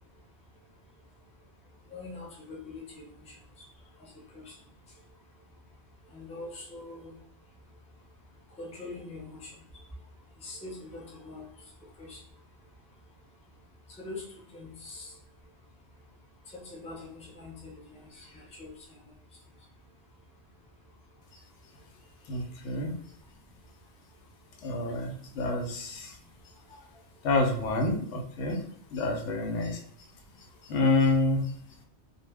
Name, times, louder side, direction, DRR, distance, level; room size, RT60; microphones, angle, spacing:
voice 1, 1.9-3.7 4.0-4.6 6.1-7.2 8.6-9.8 10.4-11.5 11.8-12.2 13.9-15.2 16.5-19.1 26.7-26.8, left 2 dB, 10° left, -4 dB, 0.3 m, -44 dB
voice 2, 22.3-22.9 24.6-26.1 27.2-28.6 28.9-29.8 30.7-31.4, left 2 dB, 85° left, 3 dB, 0.9 m, -28 dB
2.2 x 2.0 x 3.3 m, 0.62 s
omnidirectional pair, 1.2 m